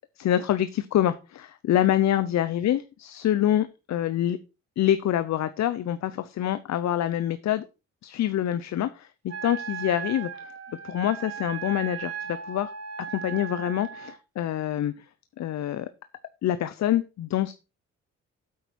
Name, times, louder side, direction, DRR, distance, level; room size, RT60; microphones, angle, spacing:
voice 1, 0.2-4.4 4.8-7.6 8.0-9.1 9.4-10.3 10.8-12.7 13.1-14.9 15.4-15.9 16.4-17.5, left 11 dB, 65° left, 13 dB, 0.8 m, -26 dB
Wind instrument woodwind instrument, 9.3-14.2, right 8 dB, 50° right, 1.7 m, -37 dB
8.8 x 8.4 x 4.3 m, 0.29 s
cardioid pair, 90°, 30 cm